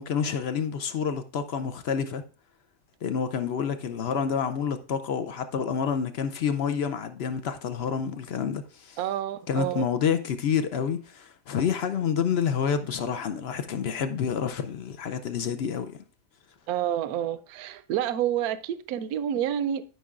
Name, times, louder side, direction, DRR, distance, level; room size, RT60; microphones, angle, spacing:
voice 1, 0.0-2.2 3.0-9.0 9.5-16.0, left 7 dB, 65° left, 0.6 m, -28 dB
voice 2, 9.0-9.9 16.7-19.8, right 10 dB, 80° right, 1.0 m, -28 dB
12.5 x 5.5 x 2.4 m
omnidirectional pair, 1.6 m